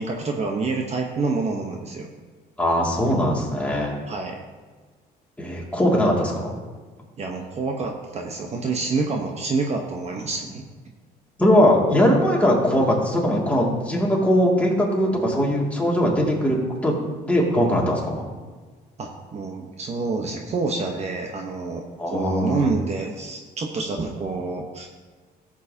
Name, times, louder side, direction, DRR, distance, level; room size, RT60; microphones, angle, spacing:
voice 1, 0.0-2.1 4.1-4.4 7.2-10.6 19.0-21.8 22.1-24.9, right 3 dB, 40° right, 2 dB, 1.1 m, -27 dB
voice 2, 2.6-4.0 5.4-6.6 11.4-18.3 22.0-22.6, equal, 10° left, -3 dB, 2.4 m, -20 dB
14.5 x 7.5 x 2.9 m, 1.4 s
cardioid pair, 110°, 17 cm